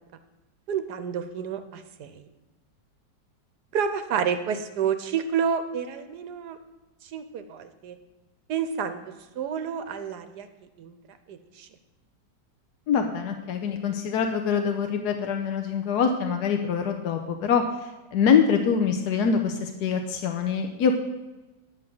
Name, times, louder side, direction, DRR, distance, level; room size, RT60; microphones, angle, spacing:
voice 1, 0.7-2.2 3.7-6.6 7.0-8.0 8.5-9.0 9.4-10.5 10.8-11.7, right 7 dB, 70° right, 10 dB, 1.2 m, -29 dB
voice 2, 12.9-21.0, left 6 dB, 65° left, 4 dB, 1.2 m, -24 dB
10.0 x 5.8 x 7.6 m, 1.1 s
omnidirectional pair, 1.9 m